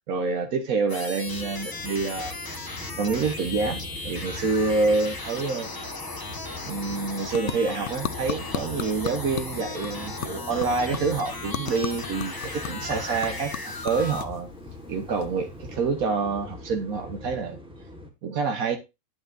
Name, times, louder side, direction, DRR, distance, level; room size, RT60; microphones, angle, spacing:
voice 1, 0.1-2.3 3.0-5.7 6.7-14.5 14.9-17.6 18.2-18.8, right 4 dB, 80° right, 1.4 m, -27 dB
sound 1, 0.9-14.3, left 3 dB, 20° left, 0.6 m, -37 dB
sound 2, 1.2-18.1, left 1 dB, 5° right, 1.4 m, -41 dB
sound 3, 6.4-15.8, left 10 dB, 65° left, 0.9 m, -38 dB
9.0 x 8.7 x 2.6 m
omnidirectional pair, 1.5 m